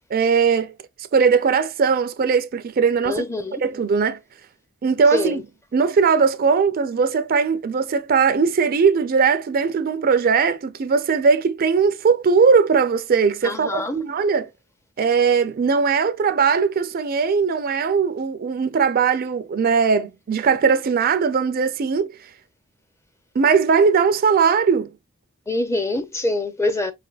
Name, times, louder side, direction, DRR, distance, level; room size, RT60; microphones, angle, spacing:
voice 1, 0.1-0.7 1.1-3.2 3.6-4.2 4.8-5.4 5.7-14.5 15.0-22.1 23.4-24.9, right 5 dB, 45° right, 0.4 m, -19 dB
voice 2, 3.0-3.6 5.1-5.4 13.4-14.0 25.5-26.9, left 2 dB, 15° left, 0.5 m, -24 dB
4.5 x 3.3 x 2.3 m
head